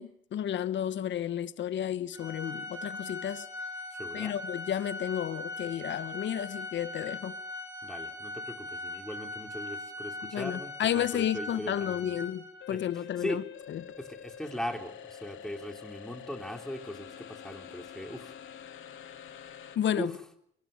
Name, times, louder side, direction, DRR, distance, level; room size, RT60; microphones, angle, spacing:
voice 1, 0.0-3.5 4.1-7.3 10.3-13.4 13.7-13.8 19.7-20.1, left 10 dB, 65° left, 1.3 m, -32 dB
Organ, 2.1-12.8, left 2 dB, 15° right, 6.7 m, -40 dB
voice 2, 3.9-4.4 7.8-12.2 12.7-13.4 14.0-18.3 20.0-20.1, equal, 5° left, 3.5 m, -39 dB
sound 1, 12.6-19.8, left 8 dB, 80° left, 3.1 m, -47 dB
24.0 x 22.0 x 6.7 m
cardioid pair, 90°, 20 cm